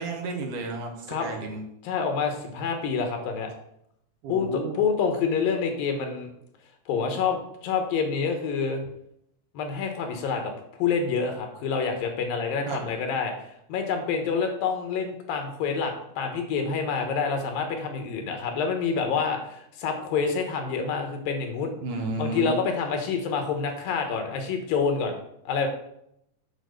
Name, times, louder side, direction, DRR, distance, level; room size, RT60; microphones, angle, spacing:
voice 1, 0.0-1.6 4.2-4.8 12.7-12.9 21.8-22.6, right 3 dB, 70° right, 2 dB, 2.8 m, -32 dB
voice 2, 1.8-3.5 4.3-6.3 6.9-8.8 9.5-10.5 10.8-21.8 22.2-25.7, left 5 dB, 85° left, 4 dB, 3.1 m, -27 dB
8.9 x 4.9 x 6.5 m, 0.76 s
omnidirectional pair, 4.0 m